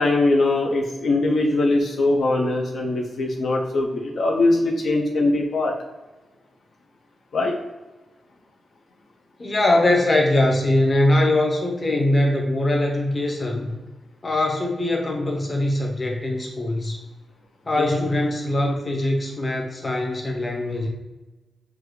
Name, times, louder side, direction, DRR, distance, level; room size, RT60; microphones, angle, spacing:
voice 1, 0.0-5.7 7.3-7.5 17.8-18.1, left 2 dB, 60° left, 0 dB, 0.5 m, -21 dB
voice 2, 9.4-13.7 14.2-17.0 17.7-20.9, left 1 dB, 25° left, 0 dB, 0.8 m, -22 dB
6.3 x 2.3 x 3.2 m, 1.1 s
wide cardioid pair, 170°, 0 cm